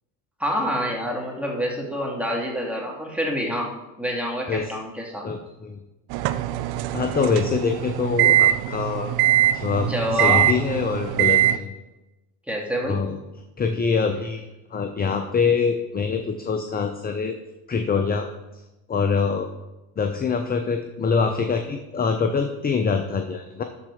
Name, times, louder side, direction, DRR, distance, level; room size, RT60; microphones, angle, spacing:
voice 1, 0.4-5.3 9.8-10.5 12.5-13.2, equal, 5° right, -1 dB, 2.7 m, -27 dB
voice 2, 5.2-5.8 6.9-9.1 9.5-11.8 12.8-13.2 13.6-14.4 14.7-17.3 17.7-18.3 18.9-19.5 20.0-23.6, left 5 dB, 20° left, 6 dB, 0.7 m, -24 dB
sound 1, 6.1-11.6, right 12 dB, 55° right, 0.6 m, -22 dB
12.5 x 4.4 x 4.9 m, 1.0 s
hypercardioid pair, 70°, 46 cm